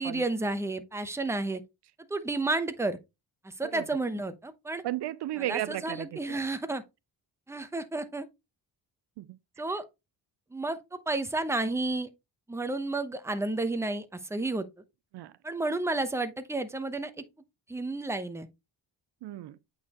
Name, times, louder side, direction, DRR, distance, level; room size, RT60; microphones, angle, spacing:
voice 1, 0.0-1.6 2.1-3.0 3.4-4.8 5.4-6.8 7.5-8.3 9.6-9.8 10.5-12.1 12.5-14.7 15.4-17.1 17.7-18.5, right 2 dB, 5° right, 0.7 m, -31 dB
voice 2, 4.8-6.4 9.2-9.4 15.1-15.3 19.2-19.6, right 14 dB, 70° right, 0.5 m, -34 dB
8.4 x 4.0 x 2.9 m
cardioid pair, 80°, 42 cm